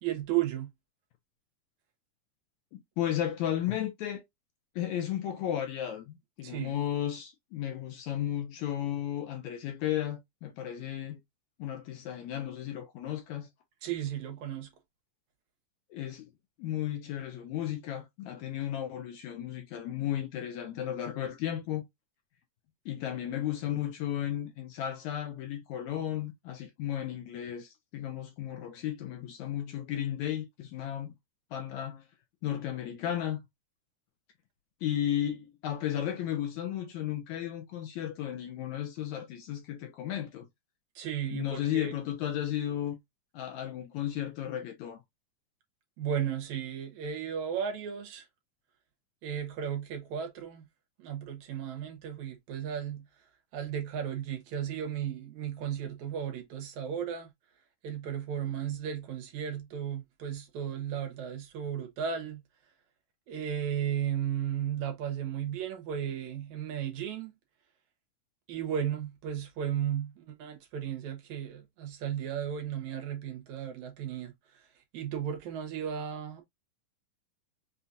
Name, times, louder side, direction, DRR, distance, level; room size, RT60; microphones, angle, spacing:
voice 1, 0.0-0.7 6.4-6.8 13.8-14.7 41.0-41.9 46.0-48.3 49.2-50.7 51.0-57.3 57.8-62.4 63.3-67.3 68.5-76.4, right 9 dB, 70° right, 2.2 m, -35 dB
voice 2, 2.7-4.2 4.8-11.2 11.6-13.5 15.9-16.3 16.6-21.8 22.9-31.1 31.5-32.1 32.4-33.4 34.8-40.5 41.3-43.0 43.3-45.0, left 11 dB, 75° left, 1.8 m, -34 dB
5.6 x 2.4 x 2.5 m
omnidirectional pair, 3.8 m